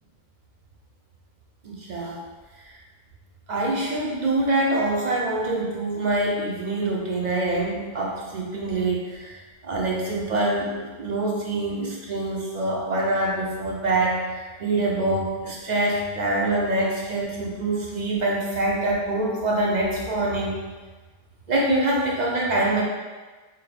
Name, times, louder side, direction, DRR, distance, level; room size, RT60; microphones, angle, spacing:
voice 1, 1.6-2.2 2.6-2.7 3.5-20.5 21.5-22.8, right 2 dB, 50° right, -3 dB, 0.7 m, -25 dB
5.8 x 2.1 x 3.2 m, 1.3 s
omnidirectional pair, 1.1 m